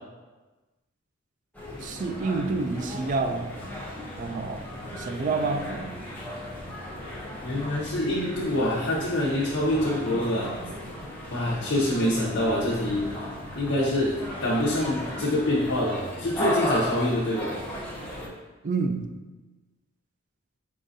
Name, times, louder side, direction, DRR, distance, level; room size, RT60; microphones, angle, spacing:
sound 1, 1.5-18.3, left 1 dB, 10° left, 0.7 m, -36 dB
voice 1, 1.8-3.5 4.2-4.7 4.9-6.0 10.1-10.2 18.6-19.2, right 3 dB, 40° right, 6 dB, 0.3 m, -29 dB
voice 2, 7.4-10.6 11.3-13.1 13.6-17.6, left 1 dB, 60° left, -5 dB, 0.7 m, -25 dB
4.9 x 3.7 x 2.7 m, 1.2 s
head